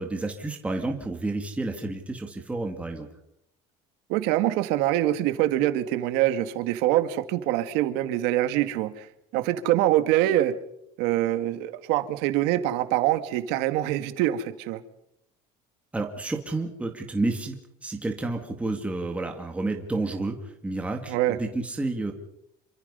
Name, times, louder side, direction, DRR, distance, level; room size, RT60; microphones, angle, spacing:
voice 1, 0.0-3.1 15.9-17.6 17.8-22.1, right 2 dB, 10° right, 2.0 m, -30 dB
voice 2, 4.1-9.1 9.3-10.5 11.0-14.8 21.1-21.4, right 14 dB, 90° right, 2.0 m, -24 dB
27.5 x 25.0 x 5.6 m
cardioid pair, 170°, 17 cm